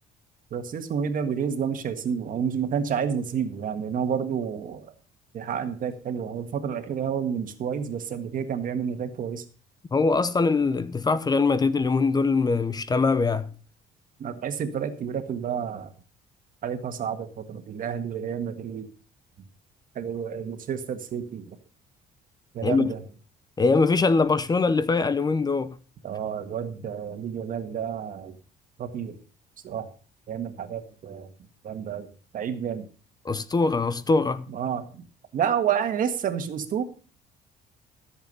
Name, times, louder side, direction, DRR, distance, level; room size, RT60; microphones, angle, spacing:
voice 1, 0.5-4.9 5.3-9.4 14.2-15.9 16.6-18.9 19.9-21.5 22.5-23.0 26.0-28.3 28.8-29.2 29.6-29.9 30.3-31.3 31.6-32.1 32.3-32.9 34.5-35.0 35.3-36.8, right 7 dB, 55° right, 1.7 m, -30 dB
voice 2, 9.9-13.5 22.6-22.9 23.6-25.7 33.2-34.5, left 4 dB, 25° left, 0.7 m, -22 dB
14.5 x 7.3 x 5.3 m
cardioid pair, 110°, 17 cm